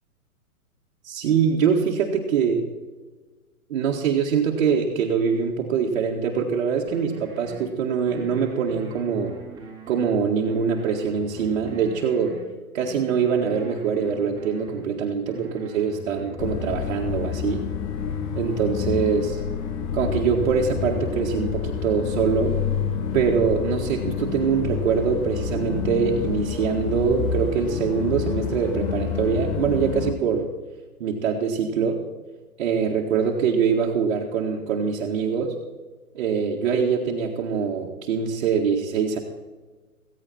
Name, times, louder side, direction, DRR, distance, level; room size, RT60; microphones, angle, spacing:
voice 1, 1.0-2.6 3.7-9.4 9.9-12.4 12.7-17.6 18.4-19.3 19.9-22.6 23.1-30.5 31.0-32.0 32.6-35.6 36.2-39.2, right 6 dB, 50° right, -1 dB, 1.8 m, -23 dB
sound 1, 6.9-7.6 8.1-10.1 10.5-12.4 12.9-14.9 15.3-16.5, right 3 dB, 10° right, 2.7 m, -43 dB
sound 2, 16.4-30.1, left 7 dB, 30° left, 1.3 m, -28 dB
15.5 x 15.0 x 4.3 m, 1.3 s
hypercardioid pair, 135°, 45 cm